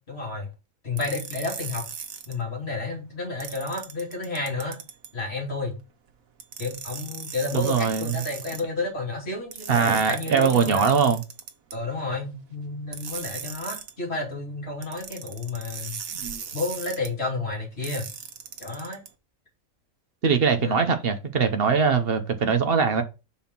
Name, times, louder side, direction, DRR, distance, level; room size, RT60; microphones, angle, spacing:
voice 1, 0.1-0.5 0.8-1.9 2.3-4.8 5.1-5.7 6.6-11.0 11.7-16.0 16.5-18.1 18.6-19.0 20.6-20.9, left 3 dB, 50° left, 3.0 m, -31 dB
sound 1, 1.0-2.3 3.4-5.1 6.4-8.6 9.5-11.7 12.9-13.9 14.8-17.1 17.8-19.1, right 7 dB, 85° right, 1.4 m, -38 dB
voice 2, 7.5-8.2 9.7-11.2 16.1-16.4 20.2-23.0, right 6 dB, 50° right, 1.1 m, -22 dB
5.5 x 4.3 x 5.8 m
omnidirectional pair, 1.4 m